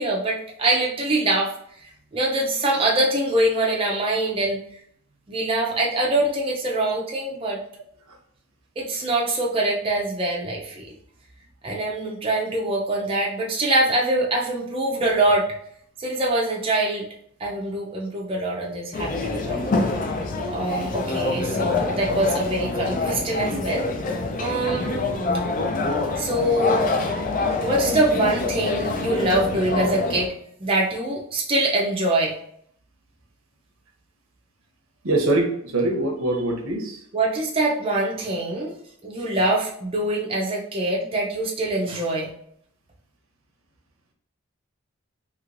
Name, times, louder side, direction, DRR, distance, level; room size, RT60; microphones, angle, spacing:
voice 1, 0.0-1.5 1.8-4.6 5.3-7.6 8.8-10.9 11.6-15.5 16.0-17.1 17.4-19.7 20.5-23.9 24.4-25.1 26.2-27.0 27.5-30.3 30.6-32.3 37.1-38.7 39.0-42.3, right 1 dB, 25° right, -2 dB, 0.5 m, -24 dB
sound 1, 18.9-30.3, left 3 dB, 40° left, 0.4 m, -26 dB
voice 2, 35.0-37.0, right 2 dB, 90° right, 2 dB, 0.8 m, -23 dB
3.0 x 2.9 x 2.5 m, 0.66 s
head